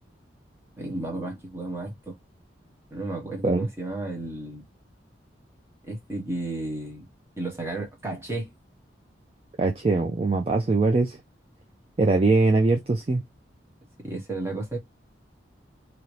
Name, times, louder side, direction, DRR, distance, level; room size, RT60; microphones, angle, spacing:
voice 1, 0.8-2.1 2.9-4.7 5.9-7.0 7.4-8.5 14.0-14.8, right 2 dB, 15° right, 1.2 m, -33 dB
voice 2, 9.6-11.2 12.0-13.2, right 3 dB, 30° right, 0.4 m, -22 dB
2.8 x 2.8 x 3.1 m
head